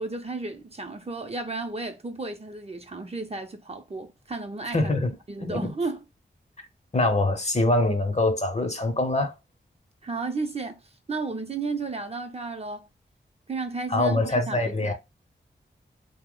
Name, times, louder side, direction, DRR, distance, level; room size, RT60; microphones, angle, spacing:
voice 1, 0.0-4.9 5.3-6.0 10.0-12.9 13.5-14.9, right 3 dB, 35° right, 0.6 m, -33 dB
voice 2, 4.7-5.1 5.4-5.7 6.9-9.3 13.9-14.9, left 2 dB, 35° left, 0.8 m, -24 dB
2.8 x 2.1 x 3.7 m
cardioid pair, 40°, 19 cm